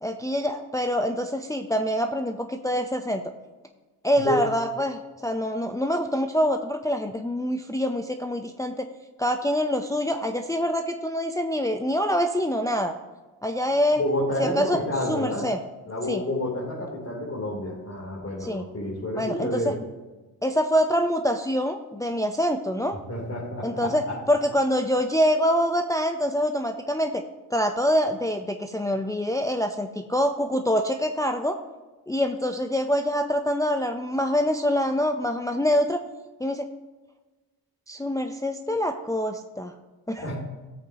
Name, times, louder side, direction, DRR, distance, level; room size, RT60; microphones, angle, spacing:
voice 1, 0.0-3.2 4.0-8.9 9.2-12.9 13.4-14.0 14.4-14.8 15.1-15.6 16.1-16.2 18.4-18.6 19.2-19.7 20.4-23.0 23.6-27.2 27.5-31.6 32.1-36.0 36.4-36.7 37.9-39.7 40.1-40.2, equal, 5° left, 5 dB, 0.7 m, -25 dB
voice 2, 4.1-4.5 13.9-15.5 15.9-19.8 23.1-24.2 40.2-40.3, left 1 dB, 30° left, -6 dB, 3.4 m, -29 dB
15.5 x 8.0 x 3.0 m, 1.2 s
supercardioid pair, 55°, 47 cm